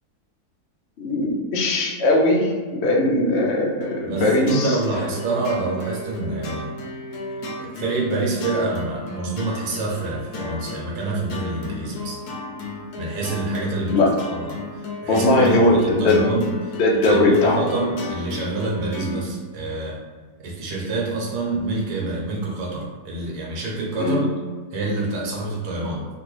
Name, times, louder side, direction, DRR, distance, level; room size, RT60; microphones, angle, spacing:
voice 1, 1.0-4.8 13.9-14.1 15.1-16.4 16.8-17.6 19.0-19.2 24.0-24.3, left 1 dB, 60° left, -2 dB, 0.7 m, -19 dB
sound 1, 3.8-19.2, left 2 dB, 80° left, 1.2 m, -34 dB
voice 2, 4.0-6.7 7.6-12.2 13.0-16.8 17.0-20.0 20.4-24.2 24.7-26.1, right 2 dB, 75° right, -2 dB, 1.3 m, -27 dB
2.9 x 2.5 x 3.1 m, 1.5 s
omnidirectional pair, 1.7 m